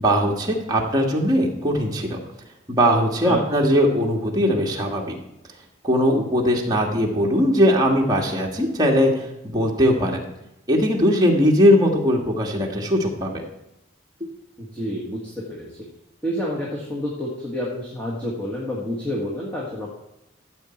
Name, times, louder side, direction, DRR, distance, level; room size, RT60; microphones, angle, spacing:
voice 1, 0.0-2.2 2.7-5.1 5.8-10.2 10.7-13.4, equal, 20° right, -1 dB, 1.7 m, -20 dB
voice 2, 3.2-3.7 14.7-15.7 16.2-19.9, equal, 10° left, -5 dB, 1.8 m, -29 dB
13.5 x 7.4 x 4.4 m, 0.88 s
head